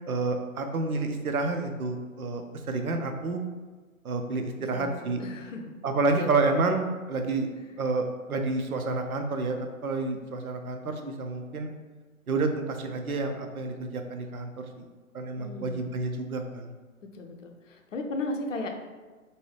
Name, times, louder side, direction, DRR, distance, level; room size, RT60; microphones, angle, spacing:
voice 1, 0.1-3.4 4.0-5.2 5.8-7.5 7.8-11.7 12.3-14.8 15.1-16.7, right 3 dB, 85° right, 5 dB, 0.6 m, -29 dB
voice 2, 4.7-5.7 6.2-6.3 7.6-7.7 15.4-15.9 17.1-18.7, left 2 dB, 60° left, 4 dB, 0.6 m, -36 dB
2.7 x 2.3 x 3.2 m, 1.3 s
figure-of-eight pair, 135°, 42 cm